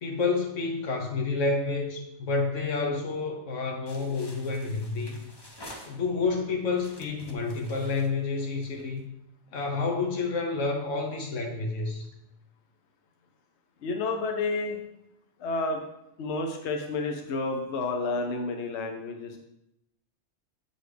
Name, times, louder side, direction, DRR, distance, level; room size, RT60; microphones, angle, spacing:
voice 1, 0.0-5.2 5.9-9.0 9.5-12.1, left 4 dB, 85° left, 0 dB, 1.2 m, -29 dB
sound 1, 3.9-6.3 6.7-9.0, left 1 dB, 25° left, 0.6 m, -49 dB
voice 2, 13.8-14.8 15.4-15.8 16.2-19.4, left 3 dB, 70° left, 3 dB, 0.9 m, -30 dB
7.9 x 4.0 x 3.3 m, 0.82 s
omnidirectional pair, 1.3 m